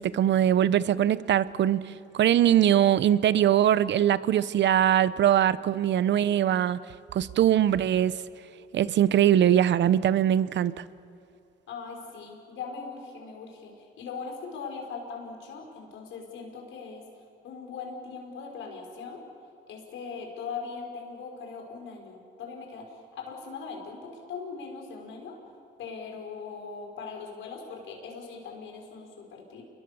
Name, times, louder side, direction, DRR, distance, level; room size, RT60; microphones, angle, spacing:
voice 1, 0.0-6.8 7.1-8.2 8.7-10.8, right 10 dB, 65° right, 16 dB, 0.8 m, -22 dB
voice 2, 11.7-17.0 17.4-19.2 19.7-25.4 25.8-29.6, left 5 dB, 80° left, 1 dB, 5.5 m, -40 dB
29.0 x 22.0 x 7.0 m, 2.6 s
cardioid pair, 90°, 20 cm